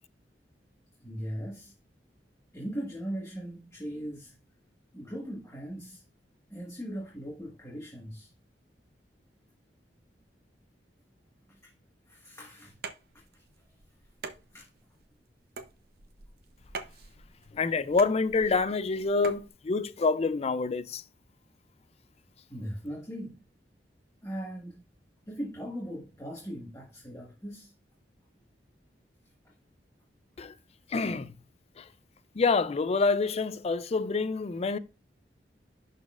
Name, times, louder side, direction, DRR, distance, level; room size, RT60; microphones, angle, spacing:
voice 1, 1.0-1.7 2.5-4.3 4.9-6.0 6.5-8.3 11.5-11.7 12.1-12.8 13.1-13.4 14.5-14.7 22.5-23.4 24.2-24.8 25.3-27.7 29.4-29.5, equal, 15° left, 1.5 m, -39 dB
sound 1, 12.7-19.5, right 4 dB, 60° right, 0.8 m, -45 dB
voice 2, 17.5-21.0 30.4-30.5 30.9-31.3 31.8-31.9 32.3-34.8, left 4 dB, 35° left, 0.4 m, -27 dB
11.0 x 4.1 x 2.4 m
head